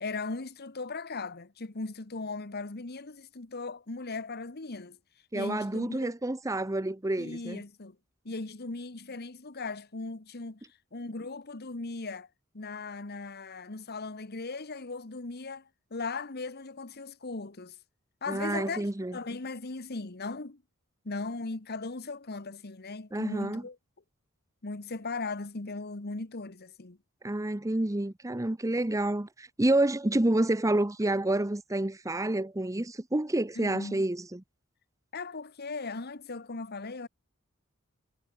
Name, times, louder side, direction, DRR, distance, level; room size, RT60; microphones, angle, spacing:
voice 1, 0.0-5.0 5.3-6.1 7.2-7.9 8.2-10.6 10.9-12.3 12.5-15.6 15.9-17.7 18.2-20.6 21.0-23.8 24.6-27.0 33.6-34.1 35.1-37.1, left 3 dB, 50° left, 1.4 m, -38 dB
voice 2, 5.3-7.6 18.3-19.2 23.1-23.6 27.2-34.4, right 1 dB, 15° right, 0.8 m, -29 dB
head